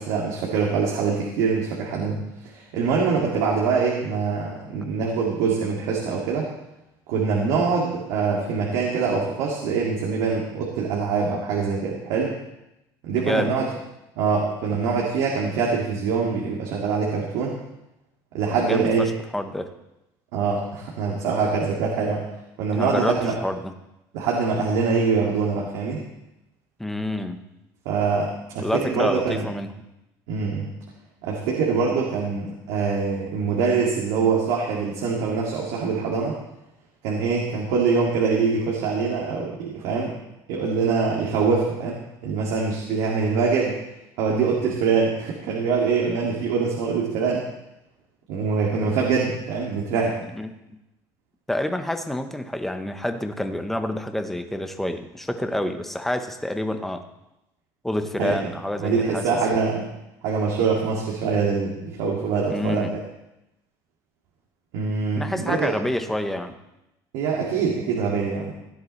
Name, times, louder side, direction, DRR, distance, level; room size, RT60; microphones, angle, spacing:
voice 1, 0.0-6.4 7.1-12.3 13.0-13.7 14.2-17.5 18.3-19.1 20.3-22.2 22.6-23.4 24.1-26.0 27.9-29.4 30.3-30.7 31.2-36.3 37.0-40.2 40.5-43.8 44.2-47.4 48.3-50.1 58.2-58.4 58.8-59.9 60.2-63.0 64.7-65.7 67.1-68.5, right 5 dB, 90° right, -3 dB, 2.2 m, -24 dB
voice 2, 13.1-13.5 18.5-19.7 22.7-23.7 26.8-27.4 28.6-29.7 50.4-50.6 51.5-57.0 57.8-59.3 62.5-63.0 65.2-66.6, left 1 dB, 5° left, 6 dB, 1.0 m, -28 dB
16.5 x 10.5 x 3.2 m, 0.90 s
cardioid pair, 125°, 8 cm